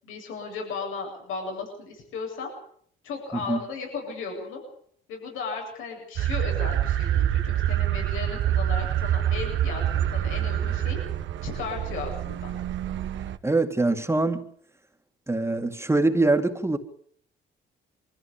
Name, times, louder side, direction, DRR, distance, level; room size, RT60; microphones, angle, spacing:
voice 1, 0.0-2.5 3.0-4.6 5.1-11.0 11.4-12.5, left 4 dB, 90° left, 7.9 m, -35 dB
sound 1, 6.2-13.4, right 11 dB, 70° right, 1.2 m, -26 dB
voice 2, 13.4-14.5 15.3-16.8, right 2 dB, 15° right, 2.1 m, -23 dB
23.5 x 15.0 x 8.5 m
cardioid pair, 90°, 20 cm